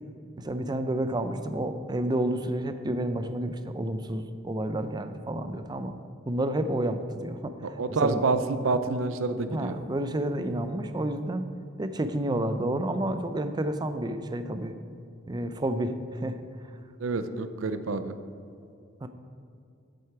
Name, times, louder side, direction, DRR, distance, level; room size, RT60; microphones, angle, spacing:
voice 1, 0.4-5.9 6.3-7.5 8.0-8.2 8.7-8.8 9.5-11.4 11.8-14.7 15.3-16.4 19.0-19.1, right 1 dB, 20° right, 9 dB, 0.4 m, -30 dB
voice 2, 7.6-9.8 17.0-18.1, right 3 dB, 80° right, 11 dB, 0.5 m, -28 dB
8.2 x 7.8 x 4.6 m, 2.4 s
head